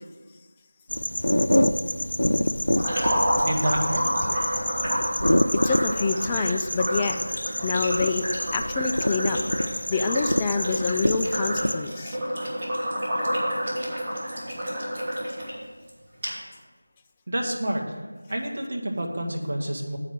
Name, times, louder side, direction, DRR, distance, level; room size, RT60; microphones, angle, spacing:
sound 1, 0.9-11.7, left 1 dB, 90° left, 0.6 m, -26 dB
sound 2, 2.7-15.5 15.9-16.0 16.2-16.3, equal, 20° right, 2.9 m, -29 dB
voice 1, 3.4-4.0 17.3-17.9 18.3-20.0, right 1 dB, 45° right, 0 dB, 1.4 m, -28 dB
voice 2, 5.6-7.2 7.6-8.3 8.5-9.4 9.9-12.2, left 4 dB, 10° left, 3 dB, 0.3 m, -26 dB
8.2 x 5.7 x 7.5 m, 1.3 s
figure-of-eight pair, 175°, 0 cm